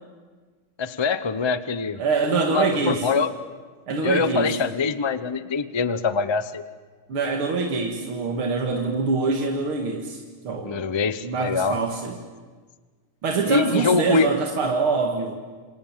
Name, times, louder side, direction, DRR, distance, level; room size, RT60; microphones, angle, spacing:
voice 1, 0.8-2.0 2.3-3.3 4.0-6.6 10.6-11.8 13.5-14.3, left 4 dB, 40° left, 12 dB, 0.3 m, -24 dB
voice 2, 2.0-3.1 3.9-4.6 7.1-10.2 10.4-10.8 11.2-12.1 13.2-15.4, right 4 dB, 85° right, 1 dB, 2.9 m, -24 dB
27.5 x 27.5 x 7.5 m, 1.5 s
omnidirectional pair, 2.3 m